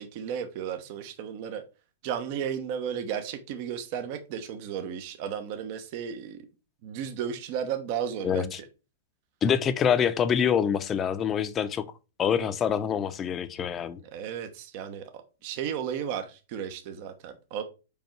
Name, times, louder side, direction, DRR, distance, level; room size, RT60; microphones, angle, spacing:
voice 1, 0.0-1.6 2.0-6.5 6.8-8.7 14.0-17.6, right 8 dB, 50° right, 1.1 m, -34 dB
voice 2, 8.2-8.6 9.4-11.8 12.2-14.0, left 8 dB, 25° left, 0.7 m, -25 dB
5.4 x 4.5 x 4.6 m
hypercardioid pair, 110°, 0 cm